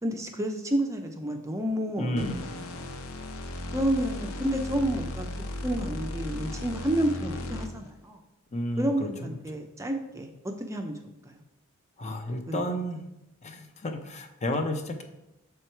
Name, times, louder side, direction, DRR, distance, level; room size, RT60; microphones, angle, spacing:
voice 1, 0.0-2.2 3.7-5.3 5.6-8.2 8.8-11.0 11.2-11.4 12.5-12.6, right 1 dB, 15° right, 4 dB, 0.5 m, -30 dB
voice 2, 2.0-2.5 8.5-9.4 12.0-13.0 13.4-15.0, left 1 dB, 30° left, 5 dB, 0.7 m, -32 dB
sound 1, 2.2-7.9, left 1 dB, 70° left, 0.7 m, -36 dB
6.9 x 4.7 x 4.5 m, 0.88 s
head